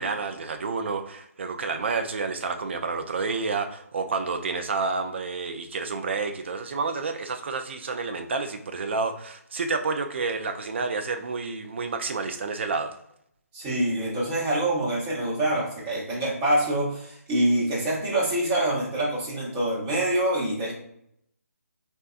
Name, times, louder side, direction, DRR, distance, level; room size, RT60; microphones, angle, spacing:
voice 1, 0.0-12.9, right 4 dB, 45° right, 6 dB, 0.4 m, -29 dB
voice 2, 13.5-20.7, right 1 dB, 20° right, -5 dB, 0.9 m, -25 dB
4.1 x 2.2 x 2.4 m, 0.72 s
figure-of-eight pair, 145°, 9 cm